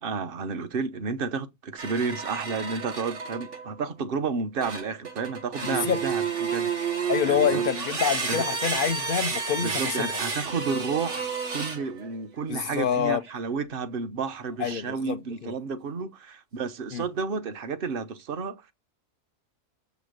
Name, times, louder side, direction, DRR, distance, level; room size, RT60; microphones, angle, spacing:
voice 1, 0.0-7.7 8.3-8.4 9.6-18.7, right 5 dB, 50° right, 0.9 m, -31 dB
sound 1, 1.8-3.7 4.6-12.1 12.8-13.1, right 5 dB, 65° right, 1.8 m, -31 dB
voice 2, 5.6-6.0 7.1-10.2 12.5-13.2 14.6-15.2 15.4-15.5 16.9-17.1, left 8 dB, 55° left, 0.6 m, -27 dB
7.0 x 5.2 x 6.5 m
omnidirectional pair, 1.4 m